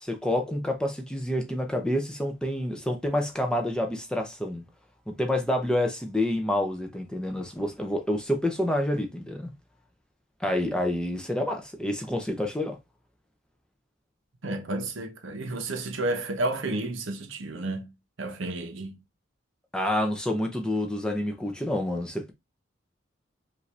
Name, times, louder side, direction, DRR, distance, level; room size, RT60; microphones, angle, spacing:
voice 1, 0.0-4.6 5.1-9.5 10.4-12.8 19.7-22.3, left 1 dB, 5° left, 0.6 m, -28 dB
voice 2, 14.4-19.0, right 2 dB, 70° right, 0.9 m, -31 dB
5.1 x 2.6 x 3.3 m
head